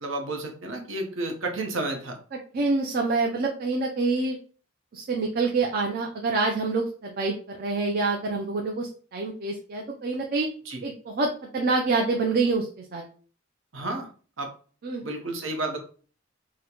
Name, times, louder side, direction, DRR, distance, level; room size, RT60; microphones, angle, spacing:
voice 1, 0.0-2.2 10.7-10.8 13.7-14.1 14.4-14.5 15.0-15.8, right 2 dB, 75° right, 2 dB, 0.8 m, -31 dB
voice 2, 2.5-4.4 4.9-10.5 10.8-13.0 14.8-15.0, right 3 dB, 50° right, 1 dB, 0.5 m, -26 dB
3.7 x 2.1 x 2.9 m, 0.41 s
head